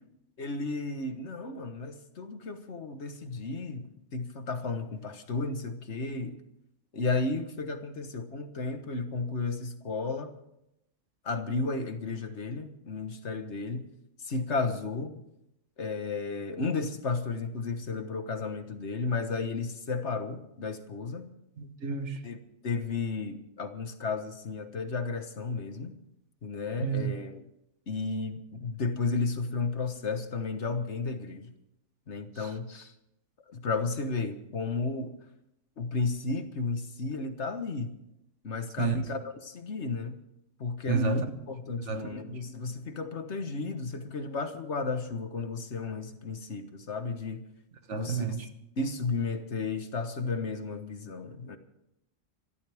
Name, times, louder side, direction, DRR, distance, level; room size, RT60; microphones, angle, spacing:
voice 1, 0.4-6.4 6.9-10.3 11.2-13.9 14.2-15.2 15.8-21.3 22.2-22.4 22.6-26.0 26.4-27.4 27.9-31.5 32.1-32.9 33.5-35.2 35.8-37.9 38.4-40.2 40.6-47.4 47.9-48.5 48.8-51.6, left 3 dB, 60° left, 1.6 m, -33 dB
voice 2, 21.6-22.2 26.8-27.2 32.4-32.5 38.8-39.0 40.9-41.3 41.8-42.4 47.9-48.5, right 7 dB, 65° right, 1.6 m, -31 dB
26.5 x 13.0 x 3.5 m
omnidirectional pair, 1.3 m